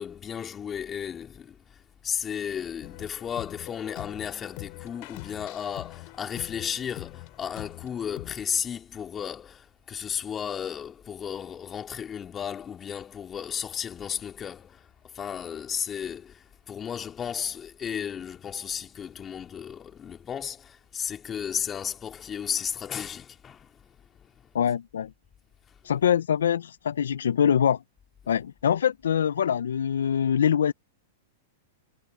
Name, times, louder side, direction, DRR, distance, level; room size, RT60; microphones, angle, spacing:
voice 1, 0.0-23.7 24.2-24.3, left 8 dB, 25° left, 3.5 m, -34 dB
sound 1, 2.8-8.4, left 30 dB, 50° left, 4.8 m, -43 dB
voice 2, 24.5-25.1 25.8-27.8 28.3-30.7, left 8 dB, 80° left, 0.9 m, -24 dB
hypercardioid pair, 110°, 0 cm